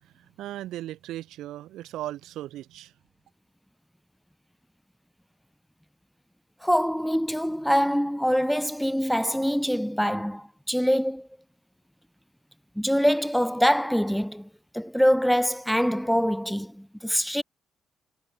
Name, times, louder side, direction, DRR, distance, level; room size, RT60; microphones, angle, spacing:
voice 1, 0.0-2.9, right 14 dB, 85° right, 3.4 m, -37 dB
voice 2, 6.6-11.3 12.7-14.5 14.7-17.4, equal, ahead, 1.5 m, -24 dB
cardioid pair, 90°, 0 cm